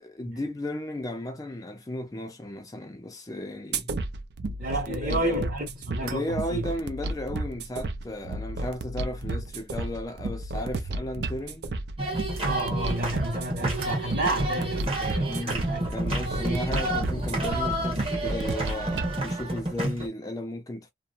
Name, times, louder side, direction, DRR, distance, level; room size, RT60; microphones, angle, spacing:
voice 1, 0.0-3.9 4.9-5.4 6.0-11.7 15.2-20.9, left 1 dB, 20° left, 0.4 m, -35 dB
sound 1, 3.7-19.1, right 2 dB, 65° right, 0.5 m, -33 dB
voice 2, 4.6-6.8 12.4-15.9 16.4-16.6, right 1 dB, 45° right, 1.6 m, -31 dB
sound 2, 12.0-20.1, right 1 dB, 30° right, 1.1 m, -30 dB
2.9 x 2.0 x 2.4 m
head